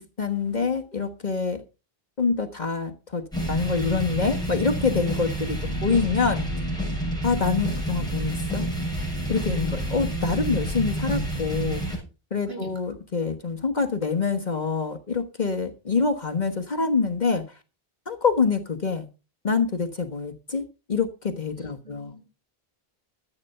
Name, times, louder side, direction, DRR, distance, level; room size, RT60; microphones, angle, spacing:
voice 1, 0.2-1.6 2.2-6.5 7.2-8.7 9.3-12.0 12.3-17.6 18.1-19.1 19.4-22.1, left 5 dB, 45° left, 5 dB, 1.4 m, -26 dB
sound 1, 3.3-12.0, right 1 dB, 5° left, 6.6 m, -28 dB
voice 2, 21.6-22.2, right 2 dB, 70° right, 3 dB, 5.6 m, -42 dB
13.0 x 8.3 x 5.5 m, 0.32 s
omnidirectional pair, 1.0 m